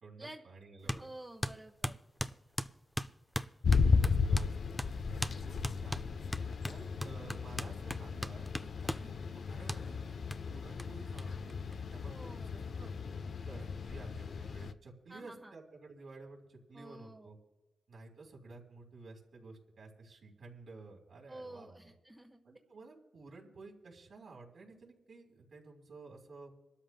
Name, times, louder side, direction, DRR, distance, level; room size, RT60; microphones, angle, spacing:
voice 1, 0.0-1.1 3.9-4.8 5.4-6.1 6.6-11.6 11.9-12.9 13.3-17.4 17.9-21.9 22.4-26.5, right 3 dB, 70° right, -1 dB, 3.6 m, -53 dB
voice 2, 0.8-2.0 12.1-12.5 15.1-15.5 16.7-17.3 21.3-22.4, right 1 dB, 20° right, 0 dB, 1.2 m, -50 dB
sound 1, 0.9-1.0 1.4-4.5 4.8-4.9 5.2-5.4 5.6-9.1 9.7-9.8 10.3-10.4 10.8-10.9 11.2-11.3 11.5-12.2, left 1 dB, 5° left, 0.4 m, -38 dB
sound 2, 3.6-14.7, left 5 dB, 65° left, 0.6 m, -34 dB
27.0 x 13.0 x 2.2 m, 1.1 s
cardioid pair, 80°, 0 cm